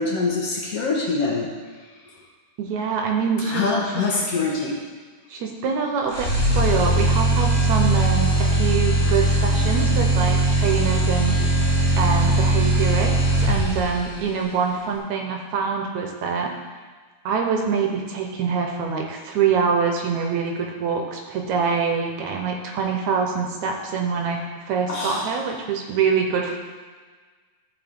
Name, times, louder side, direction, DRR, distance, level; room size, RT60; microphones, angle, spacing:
voice 1, 0.0-1.5 3.4-4.8 24.9-25.3, left 3 dB, 60° left, -3 dB, 1.8 m, -24 dB
voice 2, 2.6-3.7 4.0-4.1 5.3-6.3 6.5-11.4 12.0-16.5 17.3-26.6, right 6 dB, 75° right, 2 dB, 2.0 m, -25 dB
sound 1, 6.1-14.1, right 2 dB, 30° left, 2.5 m, -20 dB
13.0 x 5.3 x 3.5 m, 1.5 s
omnidirectional pair, 3.6 m